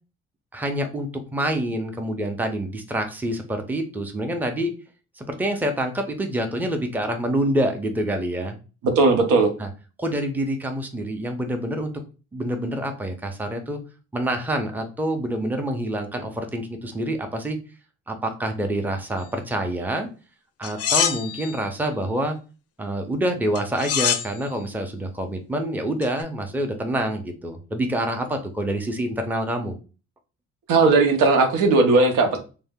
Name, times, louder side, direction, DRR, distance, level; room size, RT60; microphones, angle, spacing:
voice 1, 0.5-4.7 5.2-8.6 9.6-9.7 10.0-11.9 12.3-13.8 14.1-17.6 18.1-20.1 20.6-22.4 22.8-29.7, right 1 dB, 5° right, 4 dB, 0.5 m, -27 dB
voice 2, 8.8-9.5 30.7-32.4, right 3 dB, 90° right, 5 dB, 0.7 m, -17 dB
sound 1, 20.6-21.6 23.5-24.3 26.0-26.2, left 8 dB, 55° left, 0.4 m, -24 dB
2.6 x 2.0 x 3.5 m, 0.34 s
cardioid pair, 90°, 30 cm